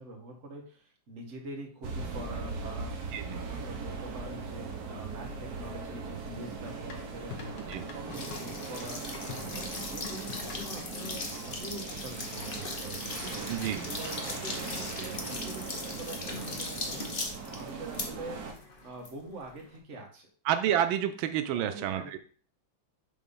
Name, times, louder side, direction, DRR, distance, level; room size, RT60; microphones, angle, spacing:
voice 1, 0.0-2.9 3.3-9.0 9.5-18.4 18.8-20.3 21.5-22.2, right 2 dB, 40° right, 1 dB, 1.7 m, -44 dB
sound 1, 1.8-18.5, right 4 dB, 60° right, 1.3 m, -40 dB
sound 2, 6.9-11.2 12.4-12.8, left 7 dB, 65° left, 1.5 m, -46 dB
sound 3, 8.1-19.8, left 3 dB, 35° left, 1.0 m, -39 dB
voice 2, 13.5-13.9 20.5-22.2, right 10 dB, 90° right, 9 dB, 1.4 m, -29 dB
7.0 x 3.1 x 5.4 m, 0.41 s
omnidirectional pair, 2.1 m